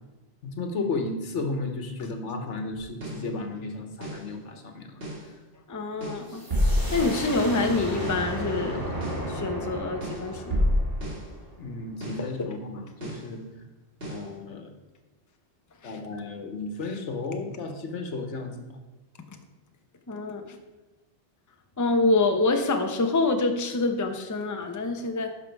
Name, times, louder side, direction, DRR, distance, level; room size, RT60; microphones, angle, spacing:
voice 1, 0.4-5.3 11.6-13.4 14.0-14.7 15.8-18.8, left 3 dB, 80° left, 6 dB, 1.4 m, -34 dB
sound 1, 3.0-3.3 4.0-4.3 5.0-5.3 6.0-7.3 8.0-8.3 9.0-9.3 10.0-11.3 12.0-12.3 13.0-13.3 14.0-14.3, equal, 55° right, 2.4 m, -29 dB
voice 2, 5.7-6.4 6.9-9.0 9.3-10.6 12.2-12.5 15.8-16.0 20.1-20.6 21.8-25.4, left 3 dB, 20° left, 5 dB, 0.7 m, -26 dB
sound 2, 6.3-11.8, right 1 dB, 15° right, 2.4 m, -34 dB
10.5 x 6.1 x 4.6 m, 1.2 s
omnidirectional pair, 1.2 m